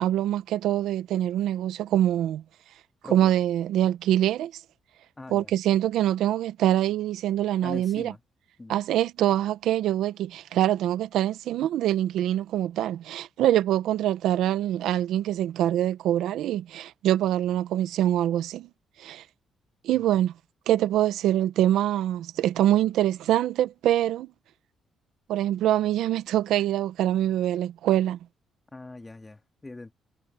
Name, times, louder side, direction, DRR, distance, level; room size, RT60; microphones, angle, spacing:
voice 1, 0.0-2.4 3.1-4.6 5.3-8.1 8.7-18.7 19.0-19.2 19.8-20.3 20.7-24.3 25.3-28.2, right 12 dB, 80° right, 0.9 m, -24 dB
voice 2, 5.2-5.5 7.6-8.2 8.6-8.8 19.9-20.2 28.7-29.9, left 2 dB, 20° left, 2.9 m, -41 dB
cardioid pair, 90°, 0 cm